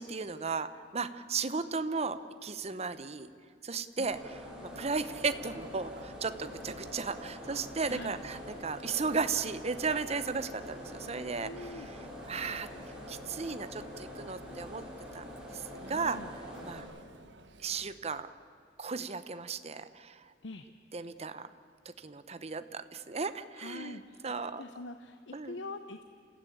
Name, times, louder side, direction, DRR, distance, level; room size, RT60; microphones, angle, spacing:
voice 1, 0.0-3.3 3.6-12.7 13.1-14.8 15.1-15.6 15.9-16.2 16.6-16.8 17.6-18.3 18.8-20.2 20.9-21.5 21.8-24.6 25.3-25.6, right 4 dB, 35° right, 12 dB, 0.9 m, -35 dB
sound 1, 4.0-16.8, left 1 dB, 5° right, 4.8 m, -45 dB
Chatter, 4.7-18.0, right 2 dB, 85° right, 1.2 m, -54 dB
voice 2, 11.4-11.9 15.8-16.3 20.4-20.7 23.5-26.0, left 2 dB, 90° left, 8 dB, 0.9 m, -44 dB
28.5 x 15.5 x 8.7 m, 2.1 s
head